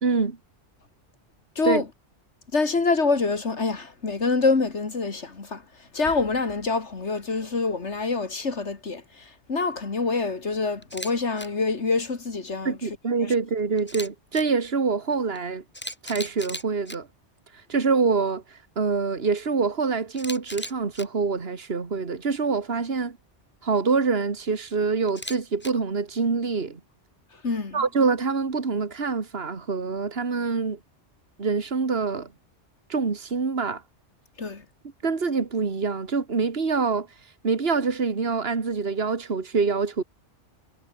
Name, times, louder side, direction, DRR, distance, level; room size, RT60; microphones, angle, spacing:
voice 1, 0.0-0.4 1.6-1.8 12.6-15.6 16.0-17.1 17.7-23.2 23.6-26.8 27.7-30.8 31.4-32.3 32.9-33.8 35.0-37.1 37.4-40.0, right 4 dB, 55° right, 2.3 m, -25 dB
voice 2, 2.5-5.6 5.9-12.8 13.2-13.3 27.4-27.8 34.4-34.6, left 4 dB, 70° left, 2.6 m, -26 dB
Camera, 10.8-11.1 11.4-11.5 13.8-14.4 15.3-15.4 15.7-17.0 20.1-21.0 25.1-25.7, equal, 10° left, 4.1 m, -36 dB
omnidirectional pair, 1.2 m